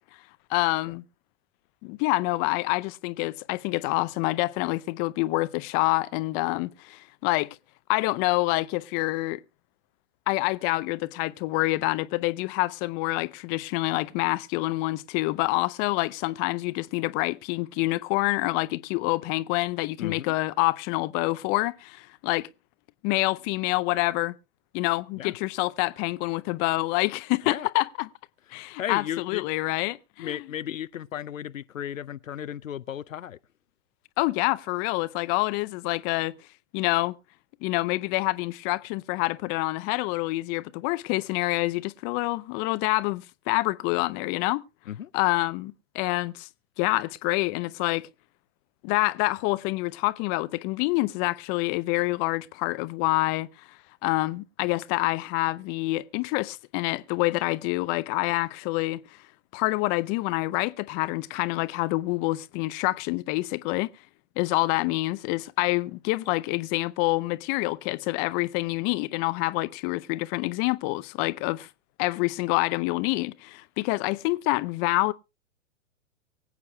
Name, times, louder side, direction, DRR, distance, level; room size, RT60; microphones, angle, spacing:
voice 1, 0.5-1.0 1.8-7.5 7.9-9.4 10.3-22.5 23.0-24.3 24.7-28.1 28.5-30.4 34.2-36.3 36.7-37.2 37.6-44.6 45.1-46.5 46.8-48.1 48.8-53.5 54.0-59.0 59.5-63.9 64.4-71.7 72.0-75.1, left 21 dB, 25° left, 0.5 m, -27 dB
voice 2, 20.0-20.3 25.1-25.3 27.5-27.7 28.5-29.4 30.2-33.4 44.9-45.1, left 10 dB, 85° left, 0.5 m, -35 dB
24.0 x 8.3 x 2.2 m
hypercardioid pair, 110°, 38 cm